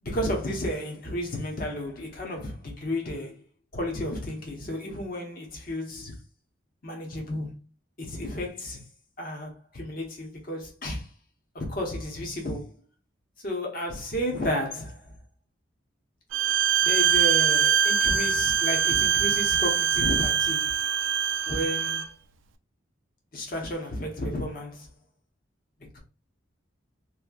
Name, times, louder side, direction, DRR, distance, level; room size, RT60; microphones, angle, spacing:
voice 1, 0.0-3.4 3.7-6.2 6.8-7.5 8.0-8.8 9.2-11.1 11.5-12.7 13.4-15.1 16.8-20.7 21.5-22.1 23.3-24.9 25.9-26.0, left 1 dB, 45° left, 1.0 m, -32 dB
Bowed string instrument, 16.3-22.1, right 7 dB, 75° right, 0.4 m, -23 dB
3.1 x 2.9 x 2.4 m
head